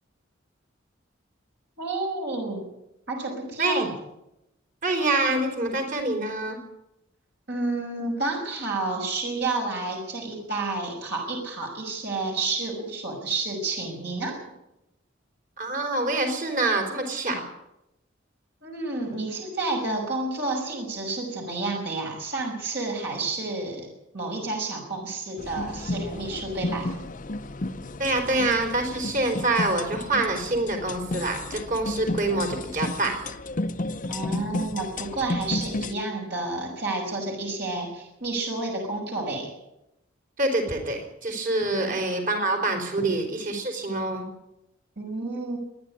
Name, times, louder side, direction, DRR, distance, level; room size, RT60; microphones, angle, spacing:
voice 1, 1.8-2.7 3.1-3.9 7.5-14.4 18.6-23.9 24.1-26.9 34.1-39.5 41.8-42.0 45.0-45.6, right 3 dB, 60° right, 0 dB, 5.9 m, -30 dB
voice 2, 4.8-6.6 15.6-17.4 28.0-33.2 40.4-44.2, right 2 dB, 45° right, 4 dB, 4.3 m, -26 dB
sound 1, 25.4-35.9, left 2 dB, 45° left, 0.8 m, -32 dB
25.0 x 10.5 x 9.9 m, 0.89 s
head